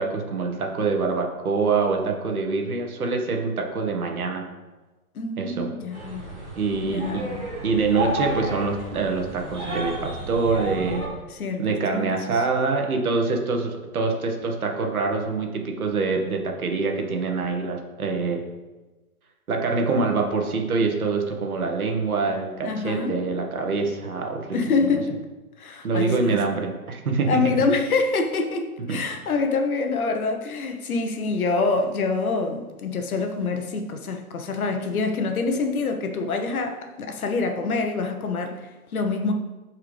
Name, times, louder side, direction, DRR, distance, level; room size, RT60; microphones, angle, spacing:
voice 1, 0.0-4.4 5.4-5.7 6.6-11.1 11.6-18.4 19.5-24.5 25.8-27.3 28.9-29.0, right 4 dB, 70° right, 3 dB, 1.6 m, -25 dB
voice 2, 5.1-6.3 6.8-7.2 11.3-11.6 11.9-12.4 22.6-23.2 24.5-25.2 25.6-26.4 27.3-39.3, left 3 dB, 70° left, 5 dB, 1.2 m, -26 dB
sound 1, 5.9-11.1, right 1 dB, 20° right, 2.1 m, -32 dB
11.5 x 4.7 x 3.4 m, 1.2 s
hypercardioid pair, 180°, 44 cm